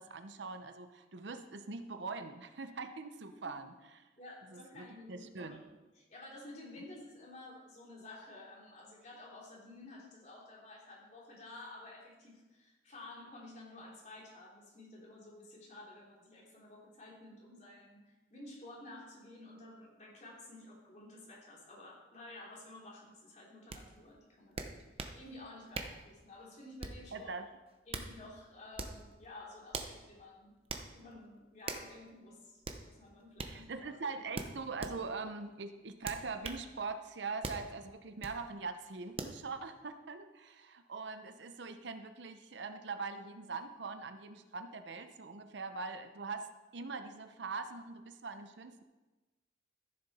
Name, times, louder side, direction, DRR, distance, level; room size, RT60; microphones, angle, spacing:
voice 1, 0.0-3.7 4.5-5.6 27.1-27.5 33.5-46.5 46.7-48.8, right 4 dB, 65° right, 8 dB, 0.7 m, -42 dB
voice 2, 4.2-5.6 6.0-27.3 27.9-30.5 30.9-34.1, left 2 dB, 40° left, -4 dB, 2.9 m, -52 dB
sound 1, 23.7-23.8 24.6-25.2 25.7-26.0 26.8-27.1 27.7-28.1 28.7-29.0 29.7-30.0 30.7-30.9 31.7-31.9 32.6-32.8 33.4-33.6 34.3-35.0 36.0-36.6 37.4-37.7 38.2-38.4 39.2-39.4, right 3 dB, 30° right, 0.7 m, -41 dB
14.0 x 6.8 x 4.2 m, 1.2 s
head